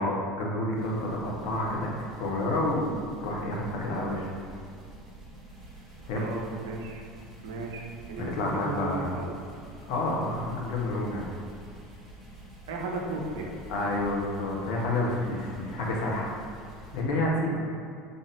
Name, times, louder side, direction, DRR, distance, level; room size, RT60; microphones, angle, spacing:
voice 1, 0.0-4.3 6.1-6.2 8.2-9.1 9.9-11.3 13.7-16.3 16.9-17.6, left 1 dB, 55° left, -2 dB, 0.8 m, -29 dB
sound 1, 0.7-17.0, right 2 dB, 20° right, 1.5 m, -48 dB
voice 2, 6.1-7.0 7.4-9.3 12.7-13.6 17.5-17.6, right 3 dB, 65° right, 1 dB, 0.5 m, -35 dB
4.0 x 3.5 x 3.5 m, 2.3 s
figure-of-eight pair, 70°, 0 cm